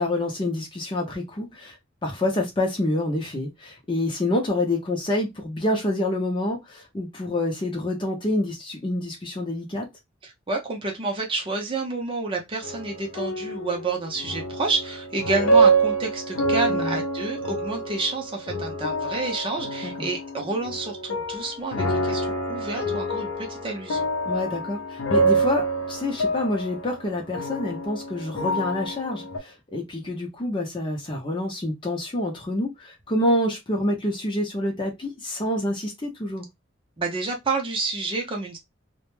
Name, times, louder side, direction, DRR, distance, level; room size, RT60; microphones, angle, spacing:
voice 1, 0.0-1.8 2.0-9.9 16.7-17.0 20.0-20.1 24.3-36.4, left 1 dB, 25° left, 0.5 m, -27 dB
voice 2, 10.2-24.1 37.0-38.6, right 3 dB, 25° right, 0.5 m, -29 dB
sound 1, 12.6-29.4, right 2 dB, 85° left, 0.5 m, -26 dB
2.1 x 2.0 x 3.0 m
head